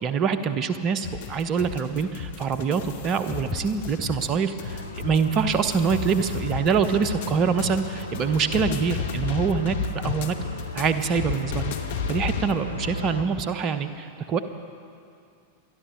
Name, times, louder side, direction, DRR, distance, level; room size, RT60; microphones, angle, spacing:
voice 1, 0.0-10.4 10.7-11.7 12.1-14.4, right 6 dB, 35° right, 11 dB, 0.8 m, -25 dB
sound 1, 1.0-12.5, left 8 dB, 55° left, 1.0 m, -34 dB
sound 2, 4.6-13.2, left 3 dB, 80° left, 0.7 m, -35 dB
23.5 x 12.5 x 4.0 m, 2.4 s
figure-of-eight pair, 90°, 0 cm